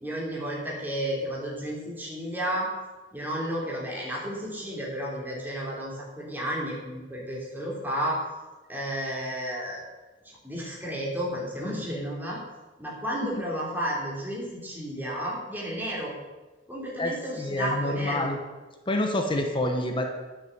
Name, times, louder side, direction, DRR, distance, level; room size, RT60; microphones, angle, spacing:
voice 1, 0.0-2.7 3.1-8.2 8.7-9.8 10.4-12.4 12.8-16.1 16.7-18.3, equal, 10° right, -4 dB, 3.1 m, -32 dB
voice 2, 17.0-18.4 18.9-20.1, left 1 dB, 25° left, 3 dB, 1.0 m, -28 dB
11.0 x 6.5 x 7.2 m, 1.2 s
head